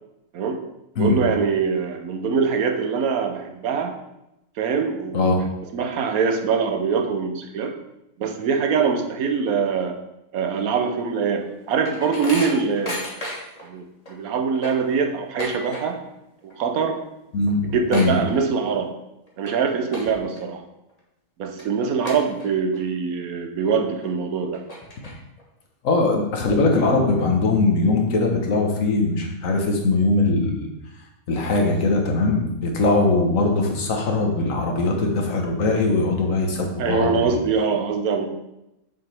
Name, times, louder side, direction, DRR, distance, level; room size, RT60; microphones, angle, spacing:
voice 1, 0.3-0.6 1.0-4.0 4.6-5.3 5.7-7.8 8.2-10.0 10.3-13.2 13.6-16.0 16.4-17.0 17.7-18.9 19.4-20.6 21.4-24.6 36.8-38.3, right 5 dB, 80° right, 5 dB, 1.2 m, -23 dB
sound 1, 11.2-13.7 14.1-14.2 14.4-16.2 16.4-16.8 17.1-17.2 17.4-18.8 19.3-19.5 19.9-20.4 20.9-21.0 21.6-21.7 22.1-22.8 23.2-23.3 24.0-24.1 24.5-25.4, equal, 25° left, 1.4 m, -33 dB
voice 2, 25.8-30.7 31.3-37.4, left 3 dB, 65° left, 1 dB, 1.5 m, -21 dB
7.1 x 5.8 x 3.4 m, 0.89 s
omnidirectional pair, 1.5 m